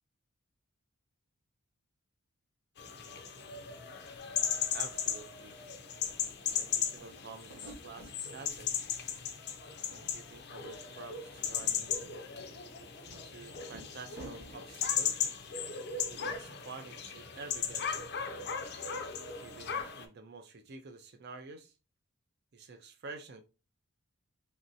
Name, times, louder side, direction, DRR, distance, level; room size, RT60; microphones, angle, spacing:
sound 1, 2.8-20.1, left 8 dB, 50° left, 0.4 m, -37 dB
sound 2, 4.1-4.2 4.4-5.6 5.9-8.1 8.5-9.3 9.5-10.4 10.7-10.8 11.3-14.6, right 1 dB, 65° right, 1.0 m, -53 dB
voice 1, 4.7-5.6 6.5-8.7 9.9-12.1 13.2-15.3 16.1-17.9 19.4-21.7 22.5-23.4, right 4 dB, 50° right, 0.5 m, -49 dB
3.1 x 2.7 x 2.6 m
head